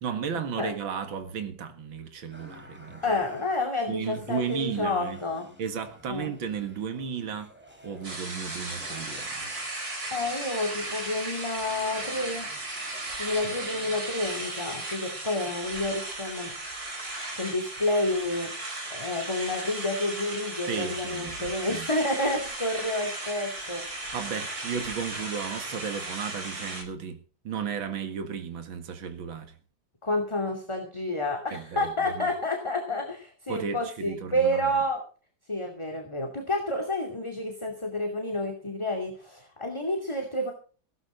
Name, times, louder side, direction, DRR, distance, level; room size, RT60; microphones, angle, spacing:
voice 1, 0.0-3.0 3.9-5.2 5.6-7.5 7.8-9.5 20.7-21.9 24.1-27.2 27.4-29.5 31.5-32.3 33.5-34.7, right 7 dB, 75° right, 2.6 m, -34 dB
sound 1, 2.3-14.1, equal, 5° right, 4.7 m, -51 dB
voice 2, 3.0-5.5 6.1-6.3 10.1-12.5 13.2-16.5 17.4-18.5 18.9-23.8 30.0-35.0 35.5-40.5, left 1 dB, 15° left, 2.6 m, -29 dB
sound 2, 8.0-26.8, right 2 dB, 45° right, 5.0 m, -36 dB
17.0 x 13.5 x 3.9 m
omnidirectional pair, 2.2 m